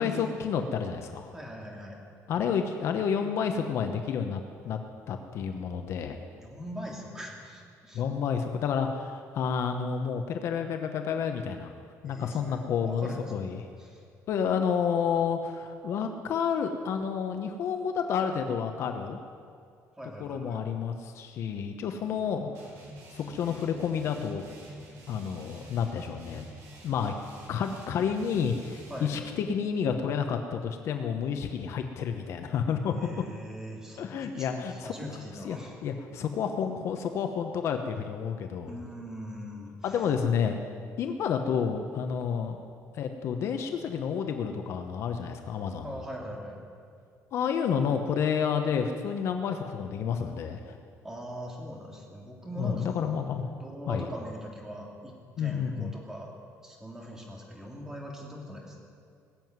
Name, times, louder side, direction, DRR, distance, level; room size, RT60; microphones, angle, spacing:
voice 1, 0.0-1.3 2.3-4.8 5.1-6.2 7.9-11.7 12.0-13.6 14.3-19.2 20.2-22.5 23.1-24.6 25.1-26.5 26.8-27.1 27.5-32.9 34.0-34.9 35.4-35.6 35.8-38.7 39.8-40.6 41.0-42.6 42.9-46.0 47.3-50.8 52.6-53.5 53.9-54.1 55.4-55.9, left 7 dB, 50° left, 6 dB, 1.0 m, -30 dB
voice 2, 1.3-2.0 6.4-8.1 12.0-14.0 20.0-20.6 28.9-29.1 32.8-35.8 38.7-40.0 45.8-46.6 51.0-53.2 53.6-56.3 56.6-58.8, equal, 10° right, -1 dB, 2.6 m, -41 dB
sound 1, 22.5-29.1, right 1 dB, 65° right, 5.3 m, -48 dB
20.0 x 7.8 x 9.5 m, 2.3 s
cardioid pair, 175°, 6 cm